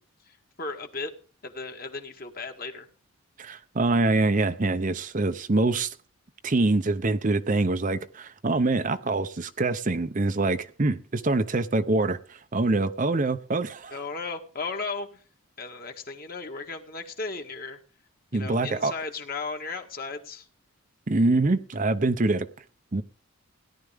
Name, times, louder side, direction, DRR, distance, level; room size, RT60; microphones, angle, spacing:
voice 1, 0.2-1.1 1.4-2.9 13.9-15.2 15.6-17.8 18.3-20.5, left 4 dB, 45° left, 1.8 m, -35 dB
voice 2, 3.4-5.9 6.4-14.0 18.3-18.9 21.1-22.5 22.9-23.0, right 2 dB, 35° right, 0.6 m, -25 dB
17.0 x 11.0 x 3.5 m
head